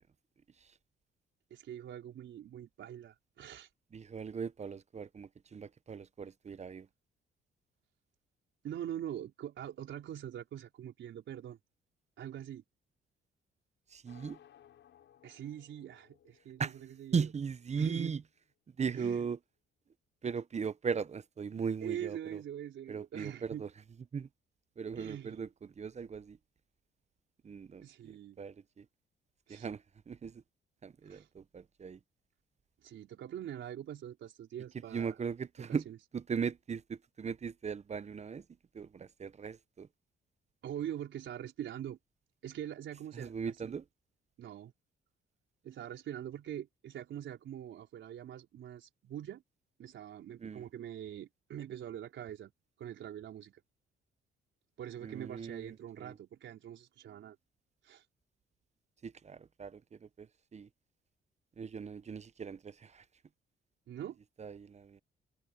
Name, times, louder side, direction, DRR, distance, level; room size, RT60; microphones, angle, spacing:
voice 1, 1.5-3.7 8.6-11.6 12.2-12.6 15.2-17.3 17.8-18.2 18.9-19.3 21.8-23.7 25.0-25.4 27.8-28.4 29.5-29.7 31.0-31.3 32.8-35.2 35.7-36.0 40.6-42.0 42.4-43.8 44.4-44.7 45.6-49.4 49.8-52.5 52.8-53.6 54.8-57.4 57.8-58.0 63.9-64.2, right 10 dB, 70° right, 4.7 m, -43 dB
voice 2, 3.9-6.9 13.9-14.4 16.6-16.7 17.1-18.2 18.8-19.4 20.2-22.4 22.9-23.7 24.1-24.3 24.8-25.5 25.8-26.4 27.4-28.1 28.4-28.8 29.5-30.4 30.8-32.0 34.9-35.8 36.1-38.4 38.7-39.9 43.1-43.8 50.4-50.6 55.0-56.2 59.0-59.8 60.2-60.3 60.5-60.7 61.6-63.0 64.4-65.0, right 6 dB, 35° right, 0.8 m, -38 dB
sound 1, 14.1-18.1, left 10 dB, 70° left, 6.4 m, -62 dB
cardioid pair, 90°, 20 cm